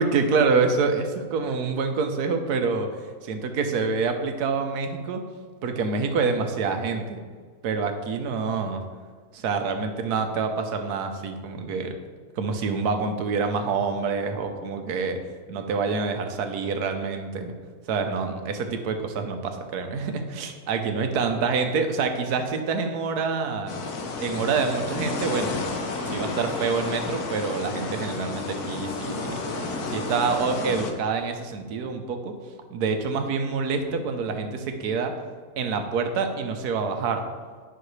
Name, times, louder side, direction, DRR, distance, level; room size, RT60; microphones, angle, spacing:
voice 1, 0.0-5.2 5.6-7.2 7.6-8.8 9.3-12.0 12.4-15.2 15.5-17.5 17.9-23.7 24.2-25.6 26.1-29.4 29.9-32.3 32.7-35.1 35.6-37.2, right 4 dB, 80° right, 6 dB, 1.3 m, -26 dB
sound 1, 23.7-30.9, left 3 dB, 75° left, 1.3 m, -31 dB
10.0 x 5.7 x 3.2 m, 1.6 s
omnidirectional pair, 1.7 m